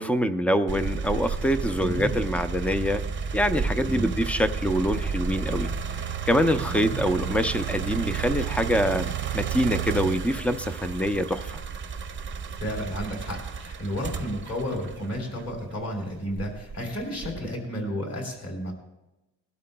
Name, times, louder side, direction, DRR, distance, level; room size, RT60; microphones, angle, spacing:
voice 1, 0.0-3.0 3.3-5.7 6.3-11.5, equal, 5° left, 10 dB, 0.4 m, -25 dB
sound 1, 0.7-15.7 16.3-17.5, right 6 dB, 30° right, 0.7 m, -32 dB
voice 2, 1.8-2.2 3.9-4.2 6.6-7.0 12.5-18.7, equal, 35° left, 1 dB, 3.5 m, -32 dB
20.5 x 12.5 x 2.2 m, 0.99 s
cardioid pair, 145°, 41 cm